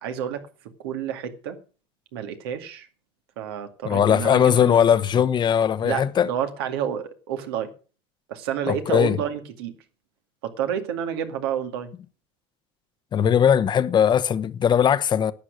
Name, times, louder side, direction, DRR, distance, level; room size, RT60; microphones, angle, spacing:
voice 1, 0.0-0.4 0.8-1.6 2.1-2.9 3.4-4.9 5.8-7.7 8.3-9.7 10.4-11.9, right 9 dB, 85° right, 2.2 m, -29 dB
voice 2, 3.8-6.3 8.7-9.2 13.1-15.3, left 8 dB, 35° left, 0.9 m, -19 dB
11.5 x 8.6 x 6.4 m
supercardioid pair, 95°, 13 cm